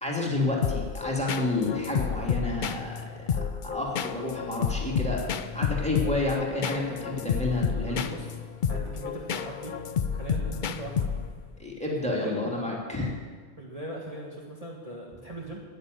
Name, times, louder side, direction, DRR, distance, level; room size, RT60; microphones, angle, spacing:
voice 1, 0.0-3.0 3.3-3.4 3.6-5.2 5.5-8.0 11.6-13.1, left 2 dB, 5° left, -2 dB, 2.4 m, -29 dB
sound 1, 0.6-11.5, left 7 dB, 50° left, 0.6 m, -31 dB
voice 2, 7.8-8.3 8.7-9.8 10.1-11.1 12.0-12.4 13.6-15.6, right 1 dB, 30° right, -4 dB, 1.7 m, -39 dB
10.5 x 9.4 x 9.1 m, 1.5 s
omnidirectional pair, 1.3 m